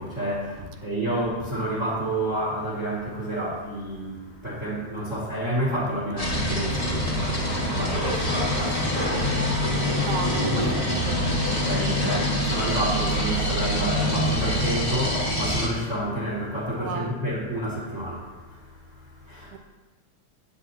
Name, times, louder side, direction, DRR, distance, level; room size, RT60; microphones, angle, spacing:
voice 1, 0.0-9.7 11.5-19.5, right 1 dB, 30° right, -5 dB, 2.1 m, -30 dB
sound 1, 6.2-15.7, equal, 60° left, 0.4 m, -25 dB
voice 2, 9.7-11.5 16.8-17.2 19.5-19.6, right 6 dB, 85° right, 6 dB, 2.3 m, -35 dB
17.0 x 8.2 x 2.7 m, 1.2 s
omnidirectional pair, 3.5 m